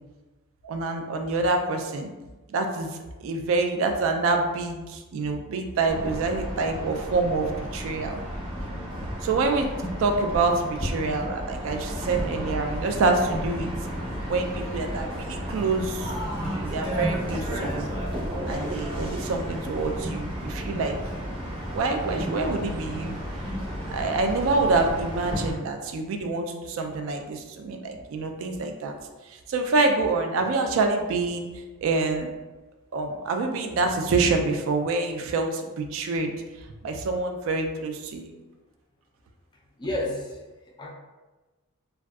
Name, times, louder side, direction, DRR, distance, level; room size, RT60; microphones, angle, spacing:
voice 1, 0.6-2.1 2.5-8.2 9.2-9.7 10.0-13.7 14.3-16.1 16.5-17.9 18.4-21.0 21.7-23.2 23.9-28.9 29.3-31.5 31.8-32.3 32.9-36.3 36.8-38.3, right 3 dB, 70° right, 5 dB, 0.3 m, -26 dB
sound 1, 5.9-25.5, equal, 25° right, 0.6 m, -32 dB
voice 2, 39.5-40.9, left 1 dB, 20° left, -1 dB, 0.3 m, -32 dB
2.5 x 2.3 x 2.2 m, 1.2 s
head